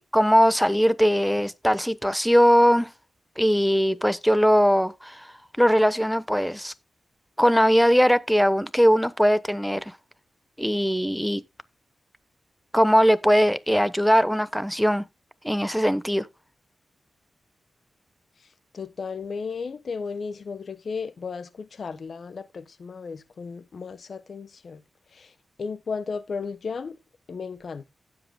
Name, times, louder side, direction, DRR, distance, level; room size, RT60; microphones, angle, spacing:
voice 1, 0.0-2.9 3.4-5.3 5.6-6.7 7.4-9.9 10.6-11.4 12.7-15.0 15.4-16.3, equal, ahead, 1.1 m, -20 dB
voice 2, 18.7-24.8 25.1-25.3 25.6-27.0 27.3-27.8, left 5 dB, 65° left, 1.1 m, -34 dB
16.0 x 7.7 x 2.2 m
cardioid pair, 65°, 0 cm